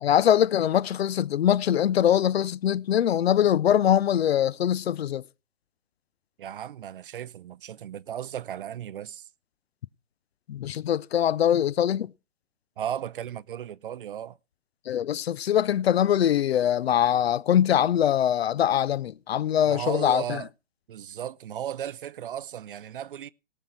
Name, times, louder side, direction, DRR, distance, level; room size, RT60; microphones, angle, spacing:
voice 1, 0.0-5.2 10.5-12.1 14.9-20.4, left 10 dB, 60° left, 0.6 m, -23 dB
voice 2, 6.4-9.3 12.8-14.4 19.7-20.5 20.9-23.3, right 10 dB, 50° right, 0.6 m, -35 dB
18.0 x 6.4 x 5.8 m
hypercardioid pair, 150°, 35 cm